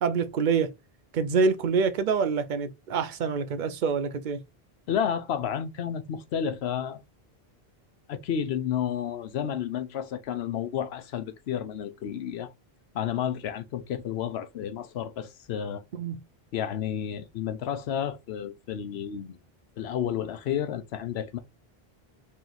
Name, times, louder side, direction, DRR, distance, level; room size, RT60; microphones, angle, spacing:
voice 1, 0.0-0.7 1.1-4.4 16.0-16.2, right 5 dB, 55° right, 0.6 m, -26 dB
voice 2, 4.9-7.0 8.1-12.5 12.9-15.8 16.5-19.4 19.8-21.4, left 9 dB, 80° left, 0.9 m, -31 dB
3.1 x 2.9 x 3.8 m
omnidirectional pair, 1.1 m